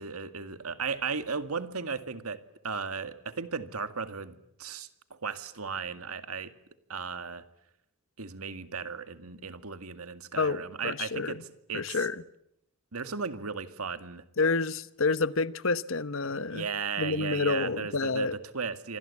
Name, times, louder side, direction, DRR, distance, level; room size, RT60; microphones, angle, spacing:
voice 1, 0.0-4.9 5.2-6.5 6.9-7.4 8.2-12.1 12.9-14.2 16.5-19.0, right 5 dB, 85° right, 2.1 m, -36 dB
voice 2, 10.4-11.3 11.7-12.1 14.4-16.7 17.0-18.4, left 3 dB, 65° left, 1.0 m, -29 dB
27.5 x 25.0 x 8.5 m
head